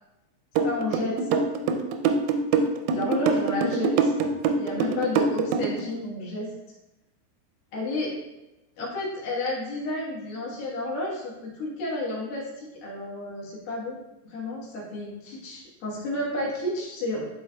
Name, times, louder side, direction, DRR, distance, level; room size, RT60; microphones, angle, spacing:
voice 1, 0.6-1.4 2.9-4.1 4.5-6.5 7.7-8.1 8.8-14.0 14.3-17.2, left 2 dB, 65° left, -5 dB, 2.5 m, -31 dB
sound 1, 0.6-5.8, right 5 dB, 85° right, 3.2 m, -23 dB
10.5 x 4.4 x 2.3 m, 1.0 s
omnidirectional pair, 5.8 m